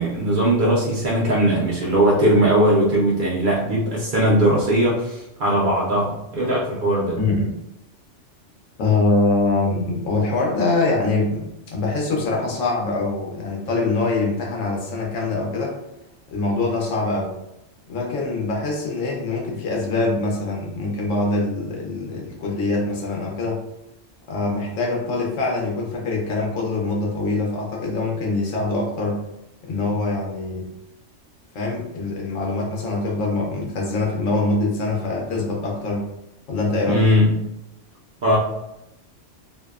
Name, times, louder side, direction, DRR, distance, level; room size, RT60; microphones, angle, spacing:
voice 1, 0.0-7.2 36.9-37.3 38.2-38.4, right 1 dB, 55° right, -5 dB, 0.6 m, -19 dB
voice 2, 7.2-7.5 8.8-15.8 16.3-17.3 17.9-23.6 24.3-29.2 29.6-30.7 31.5-36.1 36.5-37.0, left 2 dB, 85° left, -1 dB, 1.0 m, -24 dB
2.6 x 2.0 x 2.3 m, 0.88 s
omnidirectional pair, 1.3 m